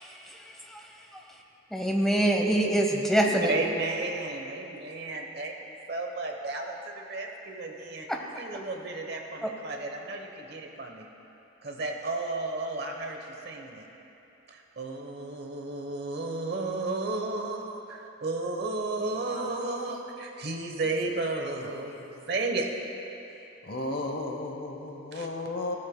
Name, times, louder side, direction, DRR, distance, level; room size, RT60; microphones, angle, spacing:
voice 1, 0.0-1.4 1.7-3.5 9.4-9.5, right 1 dB, ahead, 0 dB, 0.9 m, -26 dB
voice 2, 3.5-8.1 8.4-11.1 11.6-13.9 14.5-22.7 25.1-25.3, right 2 dB, 50° right, 2 dB, 0.9 m, -33 dB
voice 3, 19.0-20.0 21.6-21.7 22.0-22.1 23.6-25.8, left 2 dB, 45° left, 3 dB, 0.8 m, -35 dB
15.0 x 13.5 x 2.2 m, 2.9 s
head